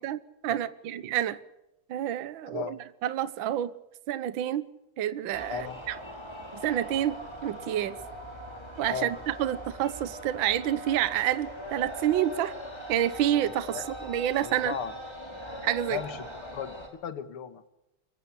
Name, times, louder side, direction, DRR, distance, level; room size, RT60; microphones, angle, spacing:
voice 1, 0.0-1.4 1.9-2.7 3.0-3.7 4.1-4.6 5.0-5.9 6.6-7.2 7.4-8.0 8.8-12.5 12.9-14.7 15.6-16.0, right 11 dB, 65° right, 1.6 m, -28 dB
voice 2, 2.5-2.8 5.5-5.8 8.9-9.1 13.7-13.9 14.4-15.0 15.9-17.6, left 8 dB, 90° left, 2.4 m, -36 dB
sound 1, 5.3-16.9, equal, 10° left, 4.7 m, -41 dB
24.5 x 16.0 x 8.5 m
omnidirectional pair, 2.4 m